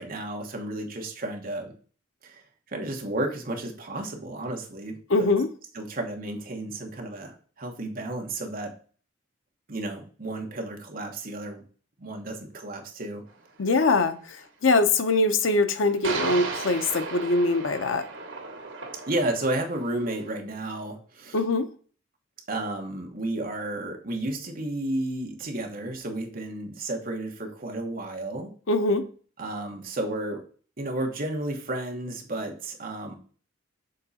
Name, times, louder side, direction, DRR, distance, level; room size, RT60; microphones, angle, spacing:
voice 1, 0.0-1.7 2.2-5.3 5.7-8.7 9.7-11.6 12.0-13.2 19.1-21.4 22.5-28.5 29.4-30.4 30.8-33.1, right 1 dB, 50° right, 1.4 m, -32 dB
voice 2, 5.1-5.5 13.6-14.1 14.6-18.1 21.3-21.7 28.7-29.0, left 3 dB, 85° left, 0.7 m, -22 dB
sound 1, 13.3-13.4 16.0-20.4, right 4 dB, 80° right, 1.6 m, -35 dB
6.6 x 3.8 x 4.2 m
head